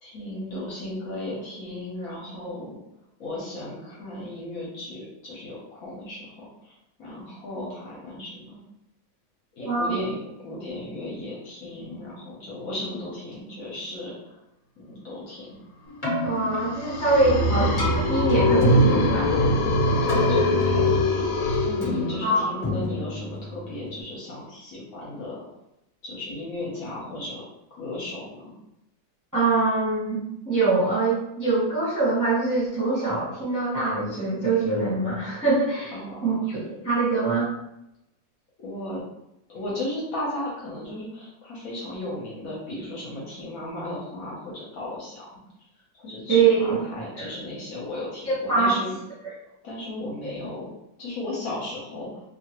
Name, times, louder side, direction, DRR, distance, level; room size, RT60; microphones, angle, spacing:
voice 1, 0.0-2.8 3.2-8.6 9.6-14.4 14.8-15.6 20.0-21.3 21.6-25.5 26.0-27.4 27.7-28.5 35.9-36.5 38.6-39.0 39.5-45.3 45.9-49.0 49.6-50.7 51.0-52.2, left 1 dB, 60° left, -5 dB, 1.1 m, -35 dB
voice 2, 9.6-10.0 16.2-19.3 22.2-22.5 29.3-35.9 36.2-36.6 36.8-37.5 46.3-46.8 47.2-47.3 48.5-48.7 50.2-50.3, right 3 dB, 15° right, -8 dB, 0.8 m, -23 dB
Keyboard (musical), 15.9-24.0, left 1 dB, 25° left, 0.9 m, -32 dB
sound 1, 16.5-22.4, left 1 dB, 80° left, 1.2 m, -22 dB
2.8 x 2.4 x 2.8 m, 0.84 s
omnidirectional pair, 1.9 m